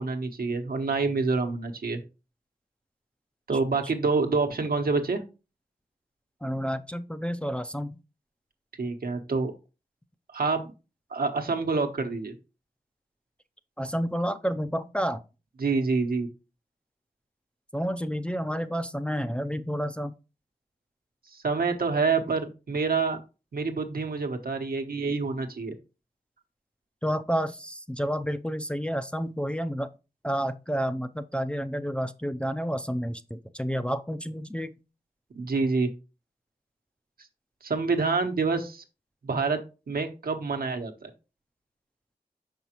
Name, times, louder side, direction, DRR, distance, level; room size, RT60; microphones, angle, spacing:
voice 1, 0.0-2.0 3.5-5.2 8.8-9.5 10.3-10.7 11.1-12.4 15.6-16.3 21.3-23.2 23.5-25.7 35.3-35.9 37.6-38.8 39.2-39.6 39.9-41.1, right 4 dB, 75° right, 1.1 m, -27 dB
voice 2, 6.4-8.0 13.8-15.2 17.7-20.2 27.0-29.9 30.2-34.7, equal, 5° left, 0.5 m, -30 dB
5.9 x 5.4 x 2.9 m
wide cardioid pair, 60°, 15 cm